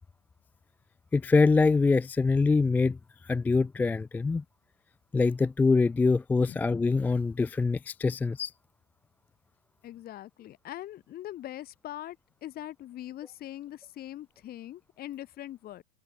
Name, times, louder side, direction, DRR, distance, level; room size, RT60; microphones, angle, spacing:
voice 1, 1.1-3.0 3.2-4.4 5.1-8.5, left 4 dB, 5° left, 0.3 m, -24 dB
voice 2, 9.8-15.8, left 13 dB, 30° left, 1.5 m, -42 dB
supercardioid pair, 130°, 31 cm